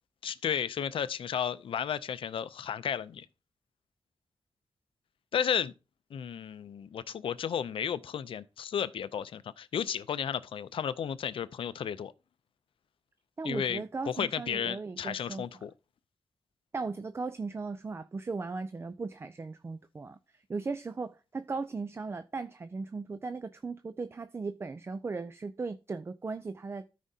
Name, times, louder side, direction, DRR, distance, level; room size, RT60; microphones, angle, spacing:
voice 1, 0.2-3.3 5.3-5.7 6.1-12.1 13.4-15.7, left 8 dB, 90° left, 0.5 m, -33 dB
voice 2, 13.4-15.4 16.7-26.9, right 4 dB, 30° right, 0.4 m, -37 dB
13.5 x 5.0 x 2.7 m
wide cardioid pair, 135°, 9 cm